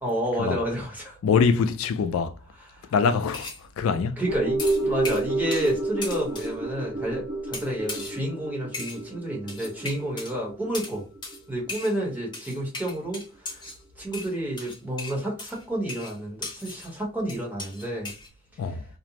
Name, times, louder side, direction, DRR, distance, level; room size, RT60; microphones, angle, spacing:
voice 1, 0.0-1.2 2.7-2.9 4.2-11.0 11.5-13.6 14.0-18.1, right 1 dB, 10° right, 1.0 m, -30 dB
voice 2, 1.2-2.3 2.9-4.2 18.6-18.8, left 5 dB, 75° left, 0.3 m, -24 dB
sound 1, 3.3-3.6 4.6-5.8 6.0-6.5 7.5-8.2 8.7-9.0 9.5-10.3 10.7-11.0 11.2-11.4 11.7-12.0 12.3-13.8 14.1-16.9 17.3-18.3, left 2 dB, 20° left, 0.9 m, -37 dB
sound 2, 4.3-12.7 13.0-13.1, right 2 dB, 35° right, 1.0 m, -31 dB
2.5 x 2.0 x 2.8 m
head